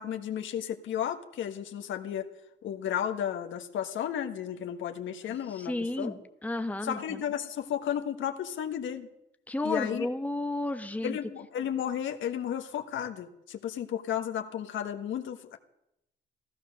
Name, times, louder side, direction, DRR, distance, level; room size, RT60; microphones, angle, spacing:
voice 1, 0.0-2.3 2.6-6.1 6.8-9.1 9.6-10.1 11.0-15.6, left 9 dB, 75° left, 6 dB, 1.4 m, -33 dB
voice 2, 5.2-7.2 9.5-11.2, left 2 dB, 5° left, 8 dB, 1.1 m, -33 dB
15.5 x 13.5 x 6.5 m, 0.82 s
cardioid pair, 90°, 20 cm